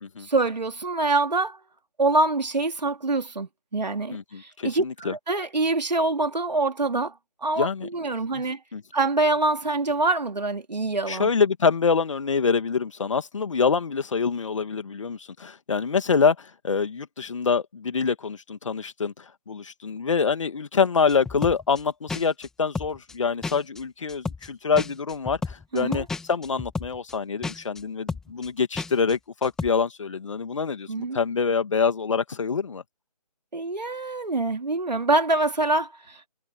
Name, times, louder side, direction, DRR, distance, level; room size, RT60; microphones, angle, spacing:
voice 1, 0.2-1.6 2.0-7.1 7.4-8.6 8.9-11.3 25.7-26.1 30.9-31.2 33.5-36.3, right 2 dB, 85° right, 3.3 m, -25 dB
voice 2, 4.1-5.1 7.6-7.9 8.3-8.4 8.7-8.8 11.1-32.8, left 5 dB, 50° left, 2.2 m, -25 dB
sound 1, 21.1-21.8 22.1-22.5 22.7-23.1 23.4-23.8 24.1-24.5 24.7-27.1 27.4-27.8 28.1-28.5 28.7-29.1 29.4-29.7, left 4 dB, ahead, 1.5 m, -32 dB
figure-of-eight pair, 165°, 21 cm